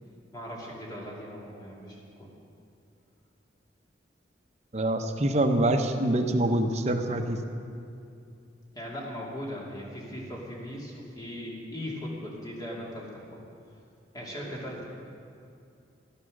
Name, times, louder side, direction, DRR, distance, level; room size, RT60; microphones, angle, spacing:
voice 1, 0.3-2.3 8.7-13.4 14.1-14.8, equal, 20° left, -3 dB, 2.7 m, -39 dB
voice 2, 4.7-7.4, right 1 dB, 35° right, 5 dB, 0.9 m, -25 dB
14.5 x 11.5 x 6.5 m, 2.5 s
head